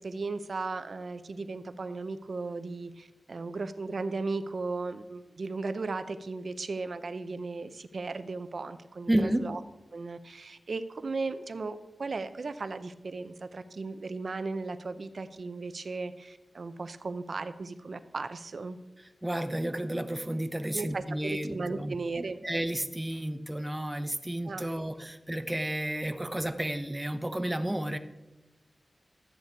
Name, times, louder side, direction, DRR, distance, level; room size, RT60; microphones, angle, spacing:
voice 1, 0.0-9.6 9.9-18.8 20.7-22.4 24.4-24.7, right 3 dB, 60° right, 12 dB, 0.7 m, -36 dB
voice 2, 9.1-9.5 19.2-28.0, right 1 dB, 15° right, 9 dB, 0.8 m, -32 dB
13.0 x 8.5 x 4.7 m, 1.0 s
wide cardioid pair, 95°, 0 cm